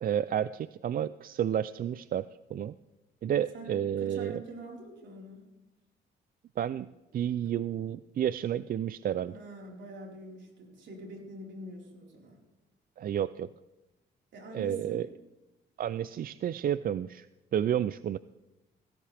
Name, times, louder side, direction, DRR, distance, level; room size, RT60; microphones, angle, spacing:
voice 1, 0.0-2.8 3.2-4.4 6.6-9.3 13.0-13.5 14.5-15.1 15.8-17.3 17.5-18.2, right 10 dB, 50° right, 16 dB, 0.4 m, -31 dB
voice 2, 3.5-5.5 9.2-12.4 14.3-15.0, right 1 dB, 65° right, -1 dB, 4.7 m, -45 dB
17.0 x 16.5 x 3.5 m, 1.0 s
cardioid pair, 90°, 20 cm